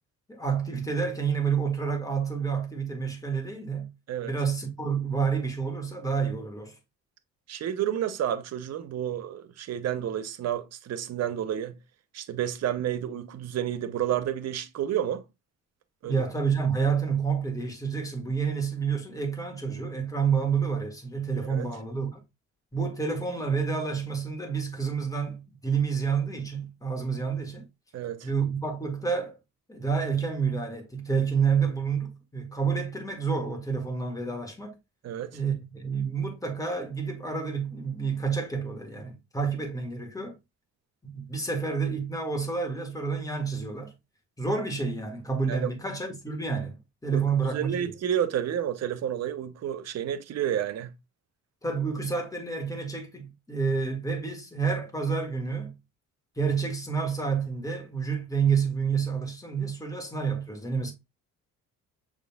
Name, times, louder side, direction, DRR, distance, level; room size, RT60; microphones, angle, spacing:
voice 1, 0.3-3.9 4.2-6.8 16.0-22.2 22.7-27.7 28.2-29.4 29.7-34.8 35.3-40.3 41.0-43.9 44.4-47.9 51.6-55.7 56.3-60.9, right 5 dB, 10° left, 1.8 m, -29 dB
voice 2, 7.5-11.8 12.1-15.2 16.0-16.2 21.5-21.6 27.9-28.3 35.0-35.4 45.5-45.7 47.1-47.2 47.5-50.9, right 10 dB, 55° right, 0.7 m, -30 dB
6.4 x 3.7 x 2.3 m
cardioid pair, 90°, 30 cm